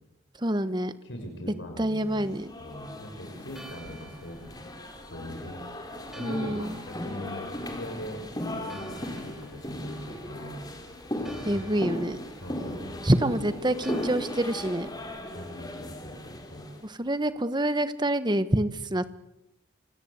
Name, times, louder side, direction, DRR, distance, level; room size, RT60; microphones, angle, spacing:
voice 1, 0.4-0.9 1.8-2.5 6.2-6.8 11.4-12.2 13.0-14.9 16.8-19.1, right 1 dB, 25° right, 12 dB, 1.2 m, -26 dB
voice 2, 1.0-2.3 2.6-4.4 5.1-5.6 6.2-8.2 8.6-10.6 11.5-11.9 12.4-13.0 15.3-16.7, equal, 75° left, 3 dB, 6.1 m, -41 dB
sound 1, 2.1-16.8, left 1 dB, 20° left, 4.1 m, -37 dB
Church bell, 3.4-17.5, right 1 dB, ahead, 4.0 m, -53 dB
27.0 x 26.5 x 8.2 m, 0.90 s
head